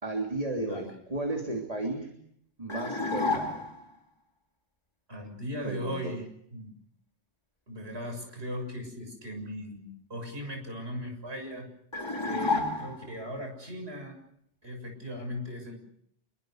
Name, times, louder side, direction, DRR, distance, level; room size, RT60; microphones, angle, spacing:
voice 1, 0.0-2.1 2.6-3.6 5.6-6.1, right 2 dB, 30° right, 2 dB, 3.3 m, -34 dB
voice 2, 0.6-0.9 5.1-6.7 7.7-11.7 12.2-14.2 14.6-15.8, equal, 65° right, 4 dB, 7.2 m, -38 dB
sound 1, 2.7-3.9 11.9-13.2, left 3 dB, 25° left, 3.4 m, -30 dB
27.0 x 24.0 x 6.6 m, 0.72 s
omnidirectional pair, 1.2 m